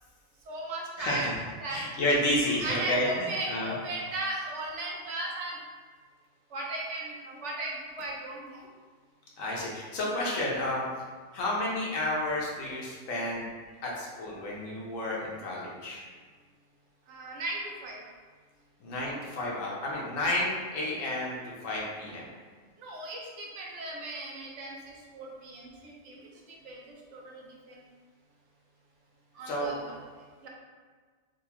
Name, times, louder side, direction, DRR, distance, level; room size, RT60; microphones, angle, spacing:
voice 1, 0.5-1.3 1.6-1.8 2.6-5.6 6.5-8.6 17.1-18.0 22.8-26.1 26.6-27.4 27.7-27.8 29.3-29.9 30.4-30.5, right 1 dB, 65° right, -2 dB, 1.0 m, -36 dB
voice 2, 1.0-1.3 1.7-3.7 9.4-10.8 11.3-13.5 13.8-16.0 18.8-22.2 29.4-29.7, left 1 dB, 80° left, -4 dB, 1.2 m, -31 dB
3.9 x 2.5 x 2.9 m, 1.5 s
omnidirectional pair, 1.3 m